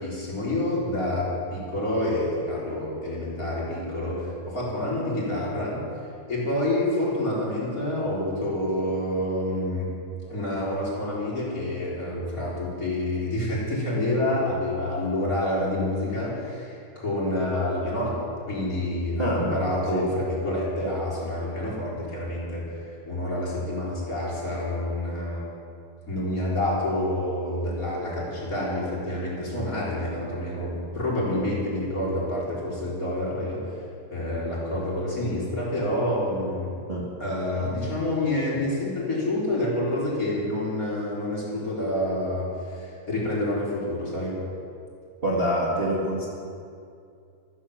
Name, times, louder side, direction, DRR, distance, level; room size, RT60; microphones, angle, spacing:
voice 1, 0.0-5.8 6.3-9.9 10.3-18.2 18.5-22.6 23.1-25.5 26.1-33.6 34.1-36.7 37.2-44.3, left 1 dB, 20° left, -5 dB, 4.2 m, -28 dB
voice 2, 19.2-19.5 19.9-20.0 36.9-37.0 37.6-37.7 45.2-46.2, equal, 50° right, -5 dB, 0.7 m, -25 dB
14.0 x 13.5 x 7.3 m, 2.4 s
omnidirectional pair, 4.8 m